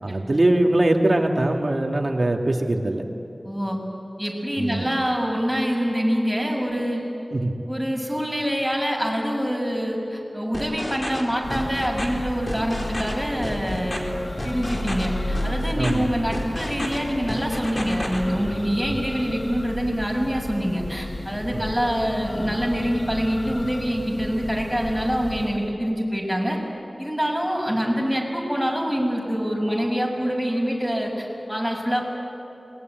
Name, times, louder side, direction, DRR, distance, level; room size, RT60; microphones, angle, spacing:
voice 1, 0.0-3.0 4.6-4.9 7.3-7.5 15.8-16.1 18.9-19.0 21.5-21.6, right 1 dB, 55° right, 2 dB, 2.5 m, -22 dB
voice 2, 3.4-3.8 4.2-7.0 7.7-14.1 14.4-26.6 27.0-32.0, equal, ahead, -2 dB, 7.0 m, -25 dB
sound 1, 10.5-11.2 11.5-12.1 12.5-13.1 13.4-14.0 14.4-15.1 15.3-15.9 16.3-17.0 17.3-18.2, left 1 dB, 40° left, 4.3 m, -31 dB
Church bell, 11.4-25.7, left 1 dB, 70° left, 2.1 m, -33 dB
27.0 x 21.5 x 9.4 m, 2.7 s
wide cardioid pair, 60°, 0 cm